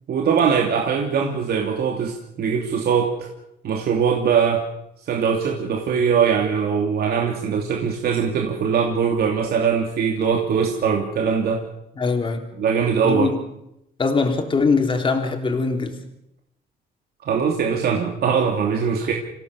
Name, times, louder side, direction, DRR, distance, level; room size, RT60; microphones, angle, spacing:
voice 1, 0.1-3.3 3.6-4.7 5.1-11.6 12.6-13.3 17.2-19.1, right 6 dB, 60° right, 1 dB, 2.9 m, -21 dB
voice 2, 12.0-12.5 13.0-13.3 14.0-16.0, left 4 dB, 30° left, 4 dB, 3.6 m, -21 dB
26.5 x 16.5 x 7.0 m, 0.83 s
cardioid pair, 120°, 18 cm